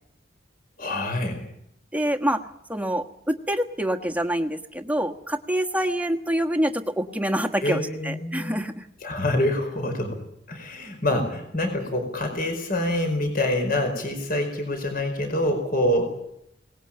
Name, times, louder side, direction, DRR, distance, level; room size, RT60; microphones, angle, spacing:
voice 1, 0.8-1.4 7.6-8.6 9.0-10.2 10.5-16.1, left 1 dB, 50° left, 6 dB, 4.8 m, -26 dB
voice 2, 1.9-2.4 2.7-8.9, equal, 10° right, 6 dB, 1.4 m, -26 dB
23.0 x 19.5 x 8.8 m, 0.78 s
head